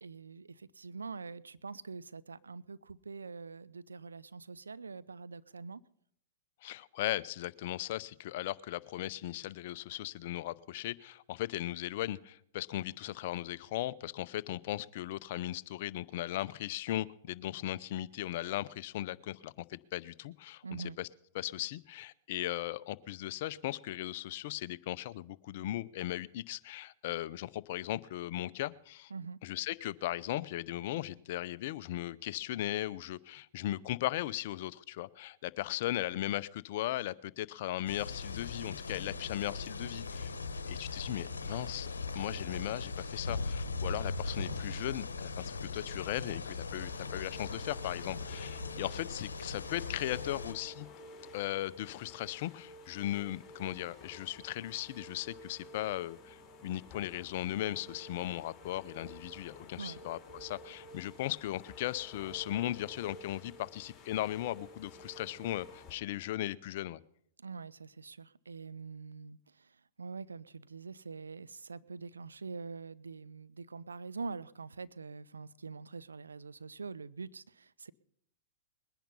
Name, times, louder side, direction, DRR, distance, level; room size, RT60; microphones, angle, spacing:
voice 1, 0.0-5.8 20.6-21.0 29.1-29.4 59.8-60.0 67.4-77.9, right 4 dB, 90° right, 0.5 m, -44 dB
voice 2, 6.6-20.6 21.0-21.1 21.3-29.1 29.4-40.3 40.7-50.9 51.3-67.0, left 14 dB, 60° left, 0.6 m, -37 dB
sound 1, 37.9-50.5, left 3 dB, 90° left, 1.1 m, -39 dB
sound 2, 46.7-65.9, left 1 dB, 20° left, 4.2 m, -52 dB
21.0 x 10.5 x 5.5 m
hypercardioid pair, 110°, 0 cm